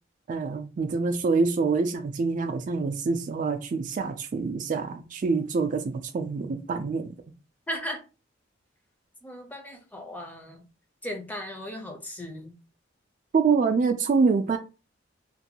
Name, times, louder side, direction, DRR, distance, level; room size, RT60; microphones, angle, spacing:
voice 1, 0.3-7.1 13.3-14.6, right 4 dB, 45° right, 0.3 m, -26 dB
voice 2, 7.7-8.0 9.2-10.6 11.0-12.5, equal, 10° left, 0.5 m, -36 dB
2.5 x 2.3 x 2.7 m
head